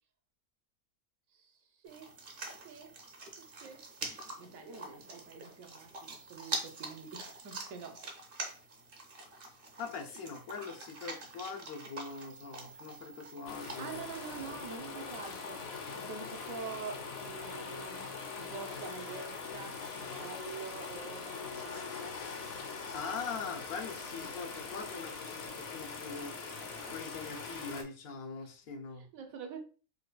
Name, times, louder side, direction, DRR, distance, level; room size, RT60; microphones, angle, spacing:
voice 1, 1.8-2.2 2.6-3.0 3.4-3.8 4.2-8.0 8.4-8.5 13.8-22.2 24.2-24.3 26.8-27.0 28.4-28.5 29.0-29.6, right 6 dB, 75° right, 1.1 m, -46 dB
sound 1, 1.9-14.8, right 3 dB, 50° right, 0.7 m, -45 dB
voice 2, 9.8-14.0 22.9-26.3 26.9-29.1, left 5 dB, 85° left, 1.2 m, -42 dB
sound 2, 13.5-27.8, left 5 dB, 55° left, 0.7 m, -42 dB
4.7 x 2.2 x 2.3 m
omnidirectional pair, 1.5 m